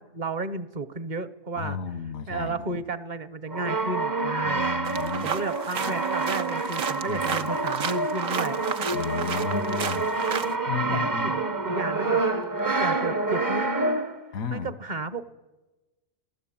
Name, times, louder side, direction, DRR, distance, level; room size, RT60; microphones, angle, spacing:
voice 1, 0.0-1.8 2.3-4.6 5.2-8.6 9.5-9.8 10.4-12.2 12.8-14.0 14.5-15.3, right 3 dB, 40° right, 15 dB, 0.9 m, -33 dB
voice 2, 1.6-2.8 4.4-5.3 7.1-7.5 8.9-10.1 10.7-11.3 14.3-14.7, left 6 dB, 90° left, 14 dB, 1.6 m, -33 dB
Brass instrument, 3.5-14.3, right 3 dB, 20° right, 0.5 m, -27 dB
sound 1, 4.8-10.5, right 7 dB, 75° right, 1.4 m, -33 dB
26.0 x 16.0 x 8.8 m, 1.2 s
omnidirectional pair, 1.4 m